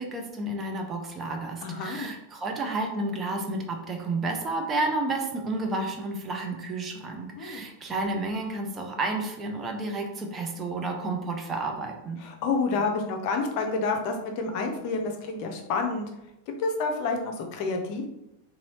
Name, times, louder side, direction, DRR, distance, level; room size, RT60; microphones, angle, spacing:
voice 1, 0.0-12.2, right 2 dB, 20° right, 2 dB, 0.7 m, -31 dB
voice 2, 1.6-2.1 7.4-7.6 12.2-16.1 16.6-18.1, left 4 dB, 45° left, 3 dB, 0.6 m, -29 dB
4.1 x 2.7 x 3.0 m, 0.88 s
figure-of-eight pair, 90°, 0 cm